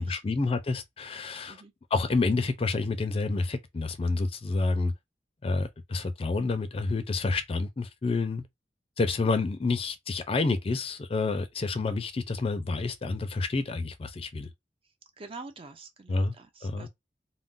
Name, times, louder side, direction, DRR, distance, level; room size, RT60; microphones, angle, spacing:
voice 1, 0.0-1.6 1.9-4.9 5.4-8.4 9.0-14.5 16.1-16.3 16.6-16.9, left 3 dB, 35° left, 0.4 m, -29 dB
voice 2, 15.2-16.9, right 3 dB, 30° right, 0.4 m, -46 dB
2.5 x 2.0 x 3.6 m
head